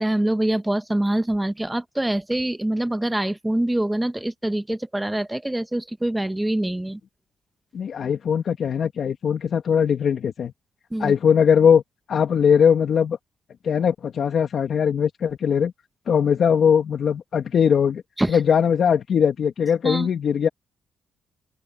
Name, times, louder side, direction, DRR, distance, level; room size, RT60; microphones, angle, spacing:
voice 1, 0.0-7.0 10.9-11.1 18.2-18.4 19.8-20.1, right 1 dB, 10° right, 1.3 m, -24 dB
voice 2, 7.7-10.5 11.0-11.8 12.1-13.2 13.6-15.7 16.1-18.0 18.3-20.5, left 7 dB, 55° left, 2.4 m, -20 dB
open air
cardioid pair, 90°, 0 cm